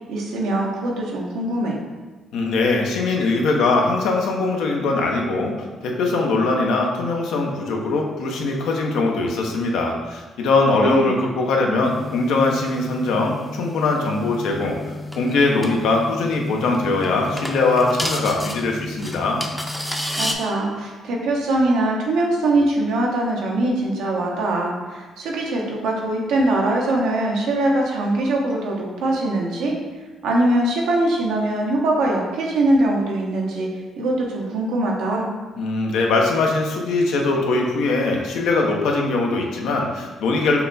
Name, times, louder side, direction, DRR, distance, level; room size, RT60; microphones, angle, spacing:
voice 1, 0.1-1.8 10.7-11.1 20.2-29.8 30.2-33.7 34.0-35.3, right 1 dB, 90° right, -2 dB, 0.9 m, -22 dB
voice 2, 2.3-14.8 15.2-19.4 35.6-40.6, left 3 dB, 85° left, 0 dB, 0.7 m, -21 dB
sound 1, 11.8-20.3, left 1 dB, ahead, 0.5 m, -31 dB
5.7 x 2.3 x 4.0 m, 1.3 s
cardioid pair, 90°, 0 cm